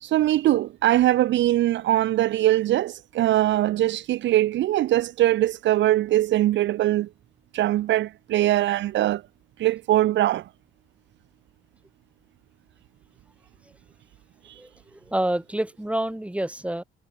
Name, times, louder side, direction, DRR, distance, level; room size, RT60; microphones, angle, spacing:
voice 1, 0.0-7.1 7.5-9.2 9.6-10.5, right 14 dB, 70° right, 0.5 m, -21 dB
voice 2, 14.6-16.8, right 1 dB, 5° right, 2.2 m, -28 dB
cardioid pair, 90°, 20 cm